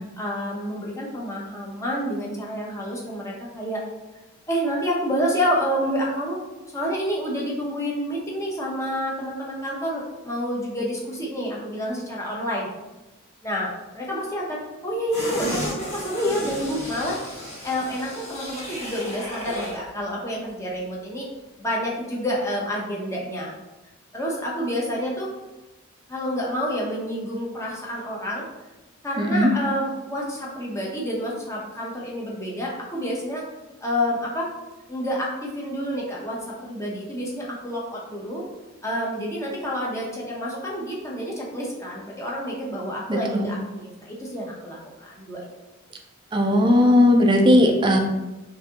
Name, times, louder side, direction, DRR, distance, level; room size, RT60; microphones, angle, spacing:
voice 1, 0.2-3.8 4.5-6.4 6.7-12.7 13.4-17.4 17.6-21.3 21.6-23.5 24.1-25.3 26.1-28.4 29.0-33.4 33.8-34.5 34.9-38.5 38.8-45.5, equal, 15° left, -3 dB, 0.7 m, -28 dB
sound 1, 15.1-19.9 20.2-20.3, equal, 35° left, 1.1 m, -33 dB
voice 2, 29.2-29.5 43.1-43.5 46.3-48.0, left 1 dB, 20° right, 3 dB, 0.4 m, -17 dB
5.0 x 2.6 x 2.8 m, 1.1 s
head